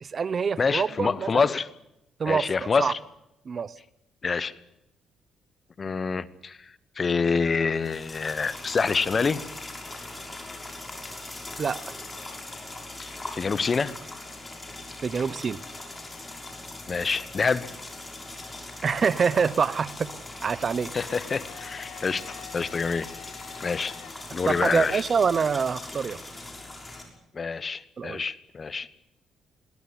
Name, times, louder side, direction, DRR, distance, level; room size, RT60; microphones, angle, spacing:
voice 1, 0.0-1.3 2.2-2.5 2.8-2.9 3.5-3.7 11.6-11.8 15.0-15.6 18.8-20.1 20.4-20.9 24.5-26.2 28.0-28.2, right 6 dB, 45° right, 18 dB, 0.9 m, -25 dB
voice 2, 0.6-1.7 2.3-3.0 4.2-4.5 5.8-9.4 13.0-14.0 16.9-17.7 20.9-23.1 23.6-24.0 24.3-25.0 27.3-28.9, left 5 dB, 35° left, 16 dB, 1.2 m, -27 dB
sound 1, 7.7-27.0, left 2 dB, 20° left, 6.4 m, -40 dB
Domestic sounds home sounds, 21.1-25.1, left 11 dB, 80° left, 1.8 m, -47 dB
21.5 x 18.0 x 9.8 m, 0.83 s
cardioid pair, 90°, 0 cm